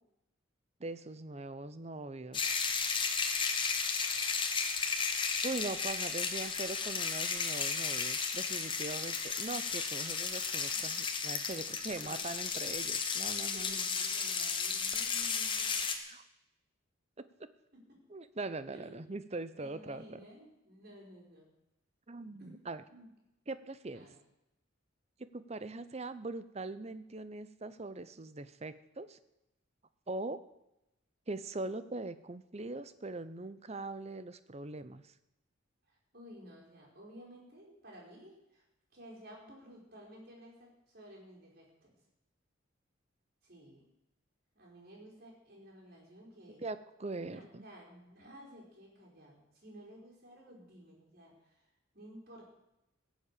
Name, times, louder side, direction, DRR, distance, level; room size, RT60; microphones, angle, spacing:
voice 1, 0.8-2.6 5.4-13.8 16.1-16.2 18.1-20.3 22.1-22.8 23.5-24.1 25.3-29.2 30.1-30.4 31.3-35.1 46.6-47.7, right 2 dB, 30° right, 13 dB, 0.7 m, -41 dB
sound 1, 2.3-15.9, left 5 dB, 25° left, 1.3 m, -34 dB
voice 2, 11.9-12.3 13.5-15.8 17.7-18.1 18.7-19.0 19.6-21.5 22.4-22.6 22.9-23.1 23.9-24.2 35.9-38.6 38.9-42.0 43.4-43.8 44.6-46.6 47.1-51.7 51.9-52.6, equal, 50° right, -2 dB, 5.4 m, -54 dB
16.5 x 7.4 x 8.5 m, 0.90 s
head